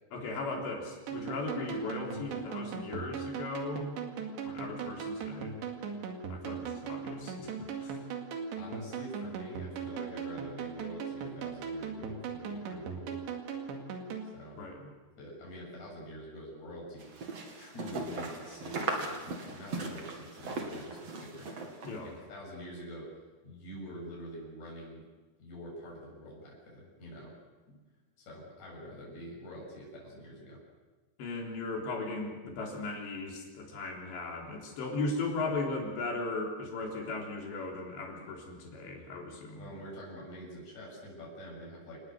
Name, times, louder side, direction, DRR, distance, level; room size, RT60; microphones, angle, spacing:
voice 1, 0.1-3.9 4.4-5.6 6.3-8.0 14.6-14.9 21.8-22.1 31.2-39.7, left 3 dB, 80° left, 0 dB, 6.0 m, -37 dB
sound 1, 1.1-14.3, right 6 dB, 80° right, 4.4 m, -39 dB
voice 2, 8.5-13.2 13.9-14.6 15.2-17.3 17.6-23.1 23.4-25.1 25.4-27.3 27.7-27.8 28.2-30.6 39.6-42.0, equal, 40° left, -4 dB, 8.5 m, -46 dB
sound 2, 17.0-22.0, right 3 dB, 40° right, 3.1 m, -38 dB
28.0 x 19.5 x 6.5 m, 1.2 s
omnidirectional pair, 5.0 m